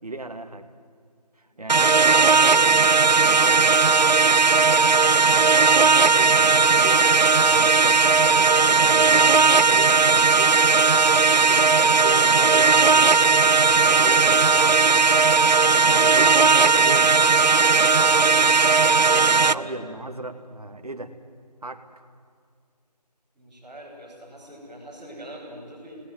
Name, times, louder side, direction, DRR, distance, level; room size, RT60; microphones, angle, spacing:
voice 1, 0.0-0.7 1.4-3.7 4.1-7.1 7.5-10.5 11.1-15.2 15.9-17.2 17.9-18.5 18.9-21.1 21.6-21.8, right 2 dB, 65° right, 7 dB, 2.5 m, -37 dB
voice 2, 1.5-2.5 19.3-19.8 23.3-26.0, equal, ahead, -15 dB, 4.2 m, -43 dB
sound 1, 1.7-19.5, right 4 dB, 90° right, 0.7 m, -17 dB
sound 2, 5.7-15.5, left 1 dB, 50° left, 6.3 m, -46 dB
29.5 x 19.5 x 9.4 m, 2.2 s
figure-of-eight pair, 180°, 21 cm